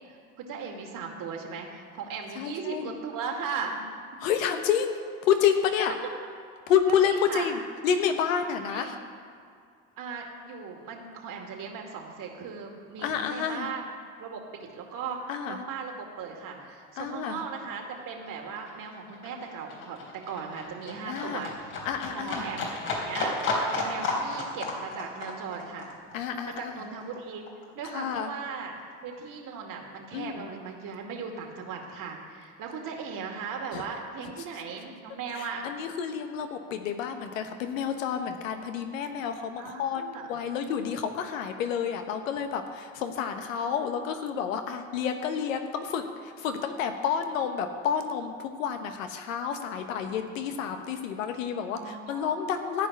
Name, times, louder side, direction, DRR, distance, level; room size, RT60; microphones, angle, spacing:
voice 1, 0.1-3.8 7.0-7.5 8.7-9.1 10.0-13.8 14.2-15.2 15.4-21.5 22.1-22.7 23.0-25.9 26.4-27.5 27.7-35.6 39.6-40.4 50.1-50.4 51.7-52.3, right 5 dB, 55° right, 1 dB, 2.4 m, -38 dB
voice 2, 2.3-2.9 4.2-5.0 5.2-5.9 6.7-9.0 13.0-13.7 15.3-15.6 17.0-17.4 21.1-21.4 21.8-22.4 26.1-26.7 27.8-28.3 30.1-30.5 33.7-33.8 35.3-40.0 40.3-52.9, left 8 dB, 90° left, 6 dB, 1.2 m, -29 dB
Livestock farm animals working animals, 16.4-16.6 16.8-27.8 28.1-29.1 29.5-29.6, left 2 dB, 70° left, 3.8 m, -33 dB
14.5 x 5.3 x 9.5 m, 2.3 s
hypercardioid pair, 80°, 38 cm